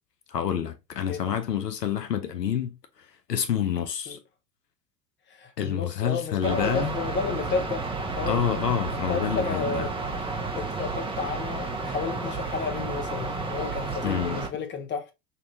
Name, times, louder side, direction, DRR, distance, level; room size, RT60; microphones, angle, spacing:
voice 1, 0.3-2.8 3.3-4.2 5.6-6.9 8.3-9.9 14.0-14.4, left 9 dB, 85° left, 0.7 m, -28 dB
voice 2, 1.0-1.3 4.1-4.2 5.3-7.9 8.1-8.4 9.1-9.9 10.5-15.1, left 5 dB, 25° left, 1.0 m, -32 dB
sound 1, 6.4-14.5, right 3 dB, 10° right, 0.8 m, -32 dB
5.3 x 2.6 x 2.6 m
figure-of-eight pair, 80°, 48 cm